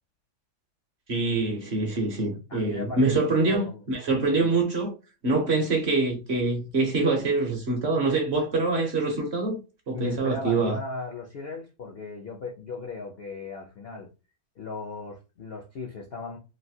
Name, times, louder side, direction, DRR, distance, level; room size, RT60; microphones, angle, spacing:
voice 1, 1.1-4.9 5.2-9.6 9.9-10.8, right 3 dB, 50° right, 0.9 m, -25 dB
voice 2, 2.5-3.8 4.2-4.5 9.9-14.1 14.6-16.4, left 4 dB, 65° left, 0.6 m, -37 dB
3.2 x 2.6 x 2.7 m
omnidirectional pair, 1.7 m